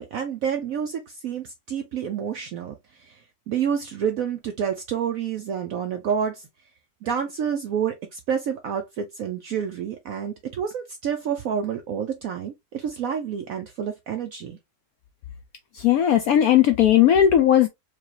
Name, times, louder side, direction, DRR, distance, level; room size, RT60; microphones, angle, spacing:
voice 1, 0.0-3.2 3.5-6.5 7.0-14.6, right 8 dB, 70° right, 0.8 m, -29 dB
voice 2, 15.8-17.7, left 10 dB, 70° left, 0.8 m, -17 dB
4.8 x 2.3 x 2.8 m
omnidirectional pair, 2.0 m